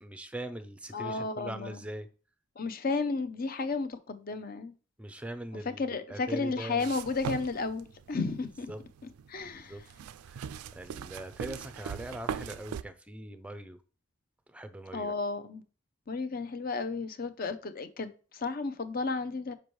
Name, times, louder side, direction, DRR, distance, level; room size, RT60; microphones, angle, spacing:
voice 1, 0.0-2.1 5.0-6.9 8.7-8.8 9.4-9.8 10.2-10.4 10.7-13.8 14.5-15.1, right 1 dB, 5° right, 0.4 m, -41 dB
voice 2, 0.9-1.8 2.6-4.7 5.8-8.7 9.3-9.8 14.9-15.6 16.1-19.5, left 4 dB, 40° left, 0.6 m, -33 dB
sound 1, 6.8-12.8, right 7 dB, 85° right, 0.3 m, -40 dB
6.7 x 5.3 x 3.1 m
head